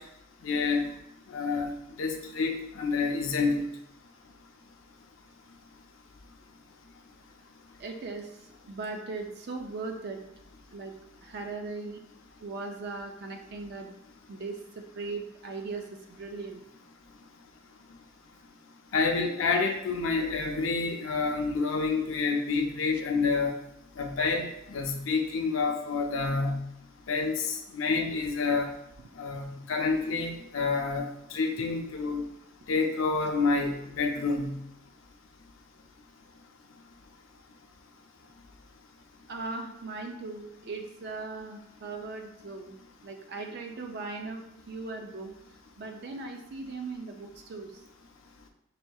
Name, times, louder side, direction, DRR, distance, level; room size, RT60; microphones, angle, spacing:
voice 1, 0.4-0.8 1.3-3.7 18.9-23.5 24.0-26.6 27.1-28.7 29.2-32.2 32.7-34.6, left 4 dB, 70° left, 3 dB, 0.5 m, -28 dB
voice 2, 7.8-10.2 10.7-10.9 11.2-12.0 12.4-14.0 14.3-16.6 39.3-42.8 43.0-45.3 45.8-47.8, right 3 dB, 55° right, 4 dB, 0.4 m, -38 dB
5.7 x 2.7 x 2.3 m, 0.81 s
head